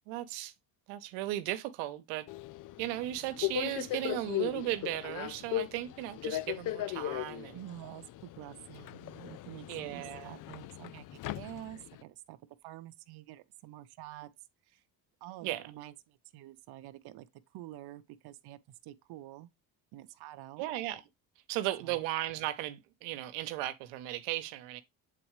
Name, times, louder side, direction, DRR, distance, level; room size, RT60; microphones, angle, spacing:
voice 1, 0.1-0.5 0.9-2.3 2.8-7.6 8.4-8.6 9.7-10.4 15.4-15.6 20.6-21.0 21.5-24.8, right 15 dB, 90° right, 0.9 m, -36 dB
Subway metro underground, 2.3-12.0, left 14 dB, 50° left, 0.5 m, -38 dB
voice 2, 7.5-14.3 14.7-14.8 15.2-17.3 17.5-19.5 19.9-20.7 21.8-22.0, right 14 dB, 60° right, 0.7 m, -48 dB
7.7 x 4.0 x 3.1 m
supercardioid pair, 95°, 44 cm